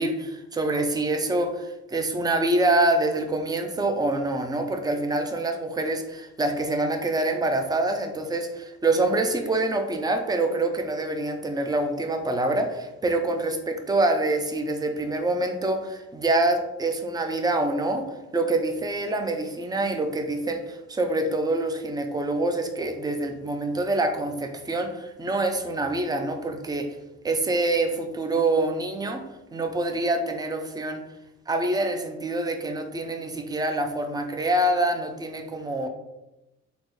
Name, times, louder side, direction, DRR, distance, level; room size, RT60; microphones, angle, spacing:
voice 1, 0.0-18.1 18.3-27.0 27.2-29.3 29.5-31.0 31.5-35.9, right 2 dB, 15° right, 5 dB, 0.4 m, -26 dB
3.8 x 2.1 x 3.1 m, 0.97 s
cardioid pair, 90°, 30 cm